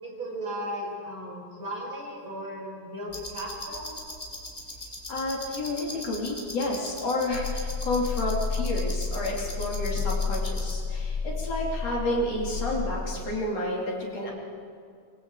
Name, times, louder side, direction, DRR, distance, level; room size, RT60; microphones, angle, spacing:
voice 1, 0.0-3.9, equal, 20° right, -2 dB, 5.4 m, -36 dB
sound 1, 3.1-10.7, left 1 dB, 15° left, 2.9 m, -40 dB
voice 2, 5.1-14.3, left 1 dB, 40° left, -2 dB, 3.9 m, -30 dB
sound 2, 7.3-13.4, left 4 dB, 80° left, 1.6 m, -31 dB
24.5 x 23.0 x 4.9 m, 2.3 s
omnidirectional pair, 4.7 m